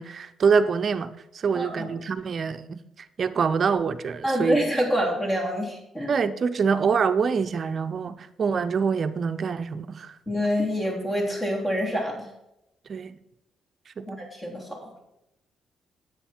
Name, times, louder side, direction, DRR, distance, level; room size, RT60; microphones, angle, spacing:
voice 1, 0.0-2.8 3.2-4.6 6.1-10.1 12.9-13.2 14.0-14.2, right 5 dB, 50° right, 0.7 m, -25 dB
voice 2, 1.5-1.9 4.2-6.1 10.3-12.3 14.1-14.9, equal, 20° left, 3.4 m, -26 dB
9.8 x 8.1 x 4.4 m
cardioid pair, 90°, 0 cm